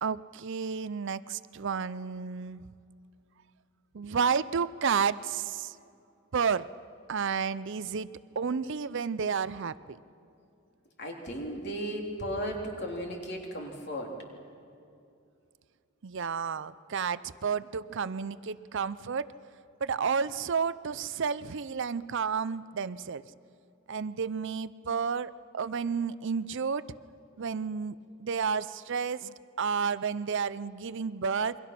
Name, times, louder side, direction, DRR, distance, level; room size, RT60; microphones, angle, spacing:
voice 1, 0.0-2.6 3.9-5.8 6.3-6.7 7.1-8.1 8.4-10.0 16.0-19.3 19.8-23.2 23.9-26.9 27.4-31.6, right 6 dB, 55° right, 15 dB, 0.5 m, -31 dB
voice 2, 11.0-14.2, equal, 50° left, 1 dB, 3.2 m, -35 dB
28.0 x 23.0 x 5.9 m, 2.5 s
head